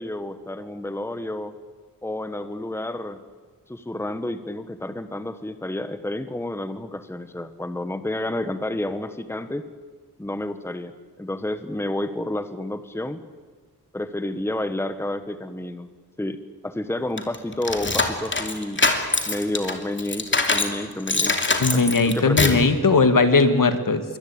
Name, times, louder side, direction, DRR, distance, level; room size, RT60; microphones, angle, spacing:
voice 1, 0.0-1.6 2.0-3.2 3.7-9.7 10.2-10.9 11.2-13.2 13.9-15.9 16.2-16.4 16.6-18.8 19.2-21.4 21.7-22.6, left 1 dB, 5° left, 10 dB, 1.3 m, -30 dB
sound 1, 17.2-20.8 21.1-22.7, left 3 dB, 30° left, 2.7 m, -23 dB
voice 2, 21.6-24.2, left 3 dB, 55° left, 9 dB, 2.1 m, -18 dB
26.0 x 23.5 x 8.8 m, 1.4 s
wide cardioid pair, 125°, 39 cm